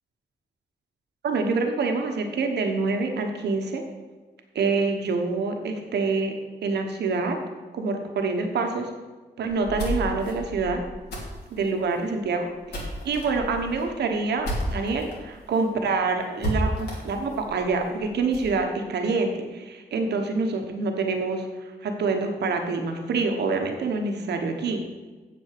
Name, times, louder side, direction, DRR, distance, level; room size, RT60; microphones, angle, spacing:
voice 1, 1.2-3.8 4.5-6.3 6.6-7.4 7.7-8.9 9.4-10.8 11.5-24.8, right 4 dB, 85° right, 4 dB, 1.2 m, -26 dB
sound 1, 9.5-15.2 15.5-15.6 15.9-16.0 16.4-18.5, equal, 85° left, 3.1 m, -33 dB
7.7 x 7.3 x 6.7 m, 1.3 s
cardioid pair, 80°, 17 cm